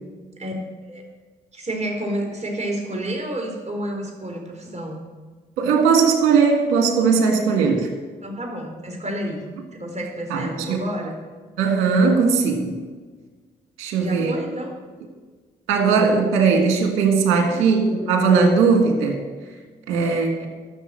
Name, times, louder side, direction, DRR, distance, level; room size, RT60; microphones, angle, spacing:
voice 1, 1.5-5.0 8.2-9.4 9.7-11.2 14.0-14.7 17.3-17.6, right 1 dB, 35° right, 1 dB, 4.1 m, -30 dB
voice 2, 5.6-7.9 10.3-10.8 11.6-12.8 13.8-14.4 15.7-19.2 19.9-20.5, right 5 dB, 85° right, 3 dB, 1.6 m, -18 dB
12.5 x 6.5 x 7.6 m, 1.4 s
supercardioid pair, 45°, 20 cm